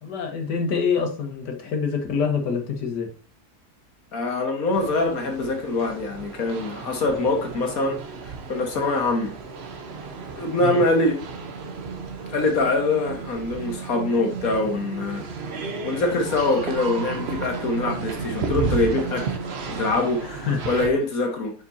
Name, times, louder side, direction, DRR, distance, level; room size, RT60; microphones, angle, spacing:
voice 1, 0.0-3.1 10.6-10.8 20.2-20.7, left 5 dB, 85° left, 1.9 m, -26 dB
voice 2, 4.1-8.0 8.3-9.4 10.4-11.2 12.3-15.3 15.8-19.4 19.7-21.5, left 2 dB, 60° left, 1.8 m, -24 dB
sound 1, 4.7-20.9, right 5 dB, 45° right, 1.0 m, -33 dB
7.2 x 6.1 x 2.7 m
omnidirectional pair, 1.8 m